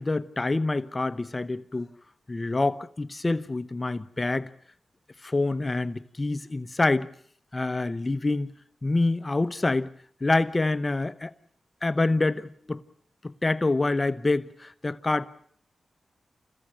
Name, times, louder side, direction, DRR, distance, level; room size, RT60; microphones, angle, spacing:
voice 1, 0.0-1.9 2.3-4.5 5.2-7.1 7.5-8.5 8.8-9.9 10.2-11.3 11.8-12.8 13.4-15.3, left 2 dB, 35° left, 1.0 m, -26 dB
28.5 x 15.5 x 9.0 m
cardioid pair, 55°, 0 cm